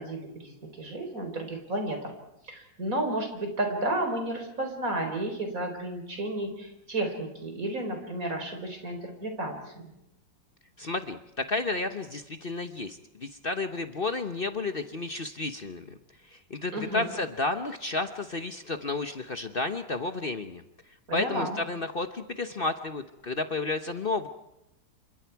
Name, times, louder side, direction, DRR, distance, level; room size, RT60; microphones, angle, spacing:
voice 1, 0.0-2.1 2.5-9.5 16.7-17.1 21.1-21.6, right 1 dB, 45° right, 4 dB, 4.7 m, -32 dB
voice 2, 10.8-16.0 16.3-20.6 21.1-24.3, left 3 dB, 40° left, 8 dB, 0.8 m, -32 dB
28.5 x 26.0 x 4.7 m, 0.85 s
omnidirectional pair, 2.1 m